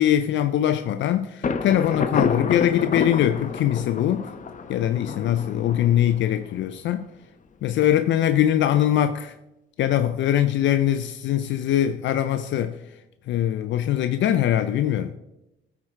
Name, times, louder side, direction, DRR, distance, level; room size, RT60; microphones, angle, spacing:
voice 1, 0.0-4.3 4.7-7.1 7.6-9.3 9.8-12.8 13.3-15.1, left 11 dB, 70° left, 0.4 m, -22 dB
Thunder, 1.4-7.1, left 5 dB, 40° left, 0.8 m, -29 dB
13.5 x 4.6 x 3.6 m
cardioid pair, 90°, 20 cm